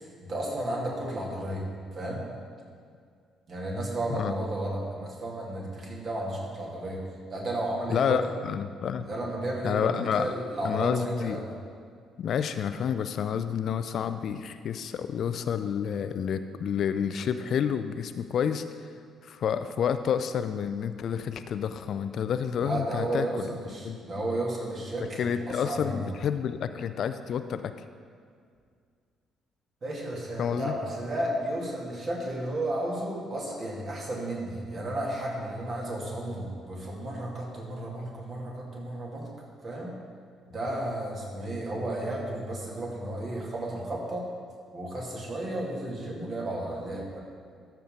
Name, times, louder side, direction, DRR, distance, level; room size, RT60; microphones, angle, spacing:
voice 1, 0.2-1.6 1.9-2.2 3.5-7.0 7.3-8.2 9.0-11.5 22.6-26.1 29.8-39.3 39.6-39.9 40.4-44.3 44.7-47.2, right 1 dB, 45° right, -3 dB, 2.3 m, -33 dB
voice 2, 7.9-9.1 9.6-10.3 10.6-11.4 12.2-18.6 19.2-23.5 23.8-24.0 25.0-27.7 30.4-30.7, left 8 dB, 55° left, 11 dB, 0.3 m, -29 dB
13.5 x 5.8 x 3.7 m, 2.2 s
figure-of-eight pair, 45°, 0 cm